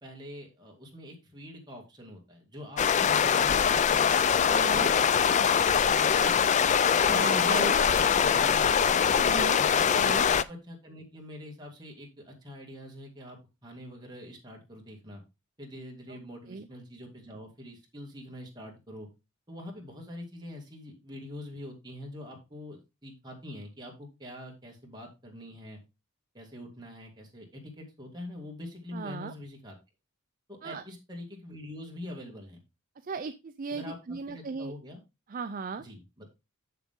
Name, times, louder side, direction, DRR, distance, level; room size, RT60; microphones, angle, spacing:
voice 1, 0.0-6.1 7.1-8.6 9.9-15.2 15.6-19.1 19.5-25.8 26.3-29.8 30.5-32.6 33.7-35.0 35.8-36.3, left 1 dB, 20° right, 0 dB, 2.2 m, -45 dB
sound 1, 2.8-10.4, left 7 dB, 35° left, 0.3 m, -23 dB
voice 2, 4.5-4.9 7.0-7.7 9.2-9.6 9.9-10.3 16.1-16.2 16.5-16.7 28.9-29.3 30.6-30.8 33.0-34.7 35.3-35.8, right 4 dB, 40° right, 10 dB, 0.4 m, -36 dB
7.2 x 6.8 x 3.7 m, 0.26 s
head